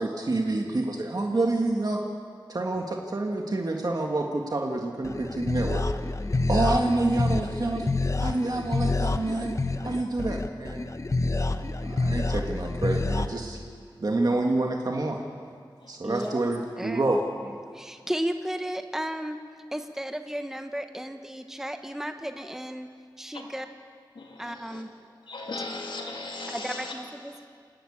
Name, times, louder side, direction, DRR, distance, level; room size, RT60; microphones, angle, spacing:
voice 1, 0.0-2.0 2.5-5.8 6.5-7.9 8.2-9.5 9.8-10.8 11.8-13.6 14.0-15.2 15.9-17.2, right 2 dB, 50° right, 1 dB, 1.7 m, -27 dB
sound 1, 5.0-13.3, left 2 dB, 40° left, 0.9 m, -28 dB
voice 2, 15.8-16.3 23.3-23.5 24.1-24.8 25.3-26.9 27.3-27.5, left 2 dB, 80° left, -1 dB, 2.5 m, -38 dB
voice 3, 17.4-19.4 19.7-22.9 23.2-23.7 24.4-24.9 26.5-27.4, equal, 5° right, 7 dB, 1.1 m, -34 dB
28.5 x 11.5 x 8.7 m, 2.2 s
wide cardioid pair, 85°, 8 cm